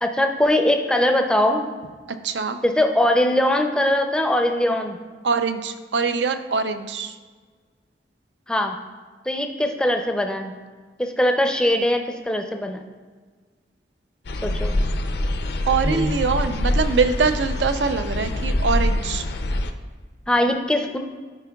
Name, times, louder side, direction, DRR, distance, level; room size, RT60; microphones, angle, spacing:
voice 1, 0.0-1.7 2.6-5.0 8.5-8.8 9.3-10.6 11.0-12.8 14.4-14.8 15.8-16.2 20.3-21.0, left 1 dB, 5° left, 4 dB, 0.4 m, -21 dB
voice 2, 2.2-2.6 5.2-7.1 15.7-19.2, right 5 dB, 85° right, 9 dB, 0.5 m, -23 dB
sound 1, 14.2-19.7, left 1 dB, 65° left, 0.5 m, -25 dB
13.0 x 4.5 x 2.3 m, 1.5 s
head